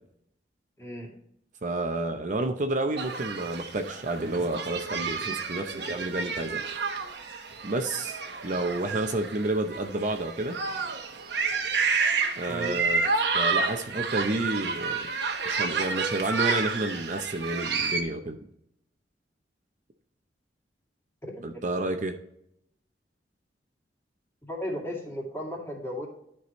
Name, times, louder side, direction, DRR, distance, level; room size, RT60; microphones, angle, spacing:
voice 1, 0.8-1.1 12.5-12.8 21.2-21.6 24.4-26.1, equal, 15° left, -2 dB, 2.3 m, -35 dB
voice 2, 1.6-6.6 7.6-10.6 12.4-13.0 13.3-15.1 15.4-18.4 21.4-22.1, right 2 dB, 45° right, 5 dB, 0.7 m, -30 dB
sound 1, 3.0-18.0, right 4 dB, 70° right, 1.1 m, -30 dB
12.0 x 4.9 x 3.1 m, 0.74 s
head